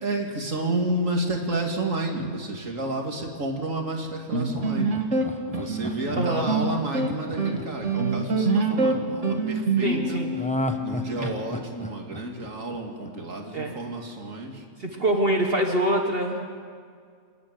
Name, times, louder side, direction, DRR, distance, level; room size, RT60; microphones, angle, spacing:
voice 1, 0.0-4.9 5.5-10.2 10.8-15.2, right 2 dB, 85° right, 1 dB, 2.8 m, -31 dB
sound 1, 4.3-11.3, right 3 dB, 65° right, 2.0 m, -26 dB
Laughter, 4.5-8.8 10.3-13.4 13.7-13.8, equal, 5° left, 1.0 m, -34 dB
voice 2, 6.2-6.5 9.8-10.3 13.5-13.7 14.8-16.5, right 1 dB, 50° right, 2 dB, 1.6 m, -25 dB
27.5 x 11.0 x 9.4 m, 2.2 s
omnidirectional pair, 1.3 m